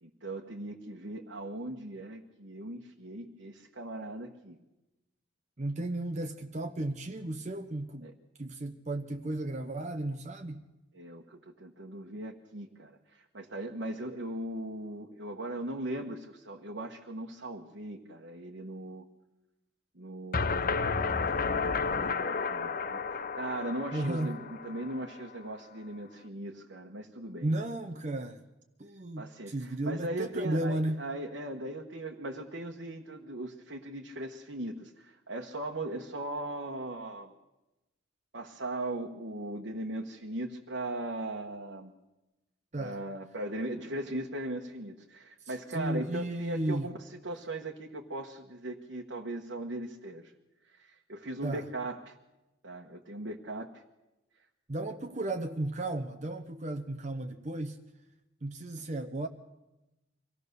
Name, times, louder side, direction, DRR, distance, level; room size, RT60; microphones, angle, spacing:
voice 1, 0.0-4.6 8.0-8.1 10.9-19.0 19.9-21.4 22.2-27.5 29.2-37.3 38.3-41.9 42.8-46.9 47.2-50.3 50.8-52.1 52.6-53.8, right 1 dB, 60° right, 1.3 m, -39 dB
voice 2, 5.6-8.1 8.4-10.6 23.9-24.4 27.4-28.4 28.8-31.0 42.7-43.0 45.5-46.9 51.4-51.7 54.7-57.8 58.4-59.3, right 1 dB, 35° right, 0.8 m, -34 dB
sound 1, 20.3-25.3, left 4 dB, 45° left, 0.8 m, -32 dB
24.0 x 16.5 x 6.8 m
head